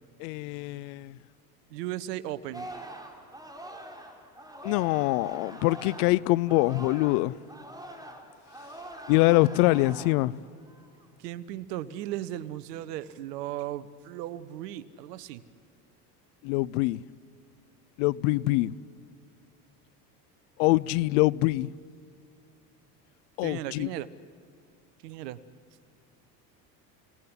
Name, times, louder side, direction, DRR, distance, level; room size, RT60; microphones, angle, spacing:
voice 1, 0.2-1.2 4.6-7.4 9.1-10.3 16.4-17.0 18.0-18.7 20.6-21.7 23.4-23.9, left 20 dB, 70° left, 0.8 m, -24 dB
voice 2, 1.7-2.7 11.2-15.4 23.4-24.1 25.0-25.4, right 13 dB, 75° right, 1.3 m, -36 dB
Singing, 2.5-7.2 7.5-10.3 10.7-11.0, right 1 dB, 10° right, 4.0 m, -44 dB
30.0 x 18.0 x 9.8 m
hypercardioid pair, 80°, 48 cm